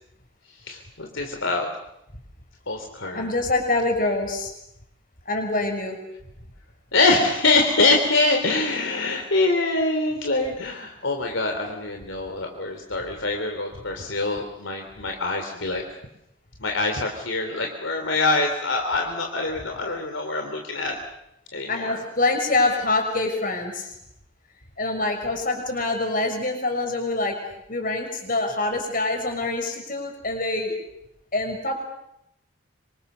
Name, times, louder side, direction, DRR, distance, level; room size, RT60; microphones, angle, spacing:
voice 1, 0.7-1.7 2.7-3.3 6.9-15.8 16.6-21.0 21.5-22.0, left 3 dB, 65° left, 3 dB, 3.3 m, -24 dB
voice 2, 3.1-4.5 5.3-6.0 21.7-23.9 24.8-27.4 27.7-30.7 31.3-31.8, left 2 dB, 40° left, 4 dB, 6.2 m, -25 dB
26.5 x 26.0 x 6.9 m, 0.81 s
head